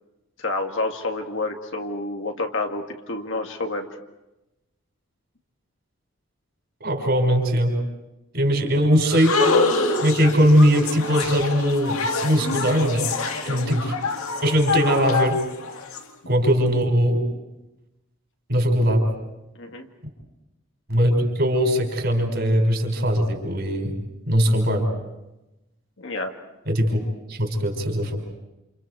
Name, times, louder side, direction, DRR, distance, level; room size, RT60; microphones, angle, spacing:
voice 1, 0.4-4.0 13.5-13.8 19.6-19.9 26.0-26.3, left 2 dB, 60° left, 3 dB, 2.0 m, -29 dB
voice 2, 6.8-7.8 8.3-9.4 10.0-13.1 13.4-13.9 14.4-15.4 16.3-17.2 18.5-19.1 20.9-23.9 24.3-24.9 26.7-27.0 27.3-28.2, equal, 50° right, 2 dB, 5.5 m, -20 dB
sound 1, 9.1-16.0, left 3 dB, 85° left, 2.0 m, -25 dB
29.0 x 28.5 x 4.8 m, 0.96 s
head